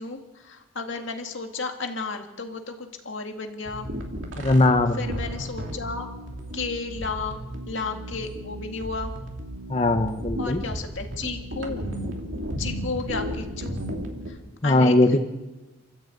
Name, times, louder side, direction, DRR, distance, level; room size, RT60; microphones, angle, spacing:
voice 1, 0.0-3.9 5.0-6.1 6.5-7.4 7.7-9.1 10.4-11.9 12.6-13.8 14.6-15.2, left 4 dB, 70° left, 4 dB, 2.1 m, -33 dB
sound 1, 3.6-14.3, equal, 70° right, 3.0 m, -34 dB
voice 2, 4.4-5.0 9.7-10.6 14.6-15.2, left 2 dB, 30° left, 7 dB, 0.9 m, -20 dB
28.5 x 13.0 x 8.5 m, 1.2 s
head